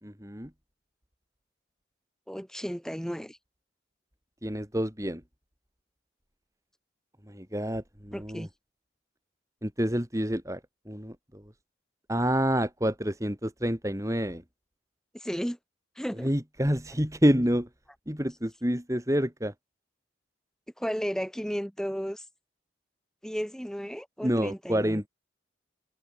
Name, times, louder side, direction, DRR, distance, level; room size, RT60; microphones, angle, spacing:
voice 1, 0.0-0.5 4.4-5.2 7.3-8.5 9.6-10.6 10.9-11.4 12.1-14.4 16.2-17.7 18.1-19.5 24.2-25.1, equal, 15° right, 3.8 m, -28 dB
voice 2, 2.3-3.4 8.1-8.5 15.1-15.6 16.0-16.3 20.8-22.2 23.2-25.0, equal, 5° left, 7.8 m, -34 dB
head